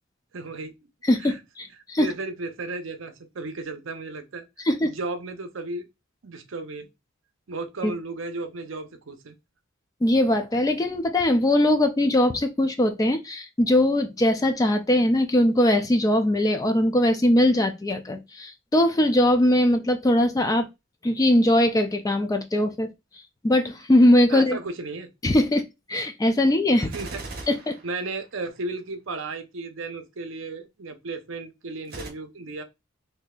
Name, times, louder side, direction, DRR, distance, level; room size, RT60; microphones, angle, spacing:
voice 1, 0.3-0.7 1.2-1.4 2.0-4.4 4.8-5.8 6.2-6.9 7.5-9.4 24.3-25.1 26.8-27.2 27.8-32.6, right 3 dB, 65° right, 0.6 m, -34 dB
voice 2, 1.0-2.1 4.6-4.9 7.8-7.9 10.0-20.7 21.0-22.9 23.4-24.6 25.2-25.6 25.9-26.9 27.5-27.8, left 1 dB, 15° left, 0.3 m, -21 dB
Gunshot gunfire, 26.8-28.6 31.8-32.1, right 2 dB, 50° right, 1.0 m, -39 dB
4.0 x 2.7 x 2.3 m
head